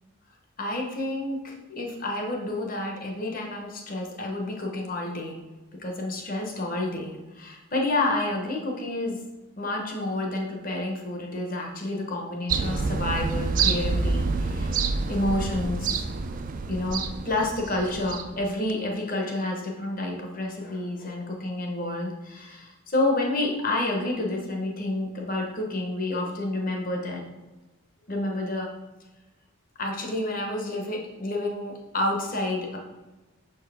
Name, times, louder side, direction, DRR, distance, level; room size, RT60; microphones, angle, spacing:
voice 1, 0.6-5.4 5.8-9.2 9.6-14.7 15.1-16.0 16.7-27.2 28.1-28.7 29.8-32.8, left 2 dB, 40° left, 1 dB, 1.0 m, -29 dB
sound 1, 12.5-18.4 18.7-18.8, right 4 dB, 40° right, 0.3 m, -27 dB
6.2 x 4.5 x 3.4 m, 1.1 s
head